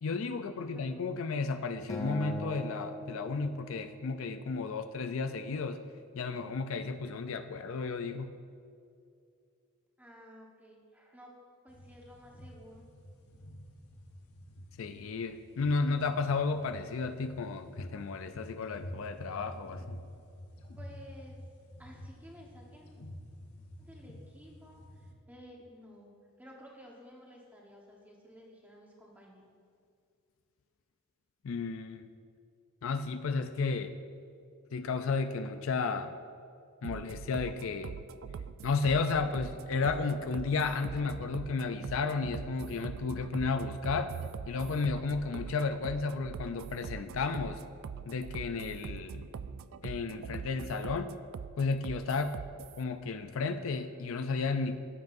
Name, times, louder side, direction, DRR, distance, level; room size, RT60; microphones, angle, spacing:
voice 1, 0.0-5.8 6.1-8.3 14.8-20.0 31.4-32.1 32.8-33.9 34.7-36.1 36.8-38.0 38.6-44.1 44.5-47.6 48.1-49.2 49.8-51.1 51.6-52.4 52.8-54.8, left 4 dB, 70° left, 9 dB, 0.4 m, -33 dB
voice 2, 0.5-0.9 10.0-11.3 11.6-12.9 20.7-21.4 21.8-22.9 23.8-26.1 26.4-29.4, equal, 5° right, -2 dB, 1.2 m, -53 dB
Acoustic guitar, 1.9-4.3, left 1 dB, 15° left, 0.9 m, -41 dB
sound 1, 11.7-25.1, equal, 85° left, 1.1 m, -49 dB
sound 2, 36.8-52.8, right 6 dB, 70° right, 0.3 m, -43 dB
16.0 x 7.7 x 2.6 m, 2.4 s
head